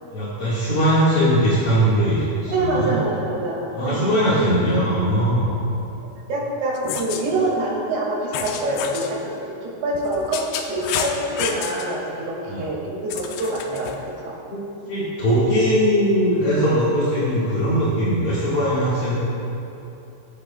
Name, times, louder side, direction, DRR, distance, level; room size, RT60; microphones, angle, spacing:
voice 1, 0.1-2.9 3.7-5.5 12.5-12.6 14.5-19.2, equal, 50° left, -11 dB, 1.9 m, -20 dB
voice 2, 2.5-4.0 4.4-4.5 6.3-14.4, right 2 dB, 70° right, -4 dB, 4.3 m, -25 dB
sound 1, 6.8-7.2 8.3-9.1 9.9-11.9 13.1-14.0, left 7 dB, 85° left, 2.7 m, -29 dB
21.0 x 8.2 x 2.3 m, 2.9 s
omnidirectional pair, 5.2 m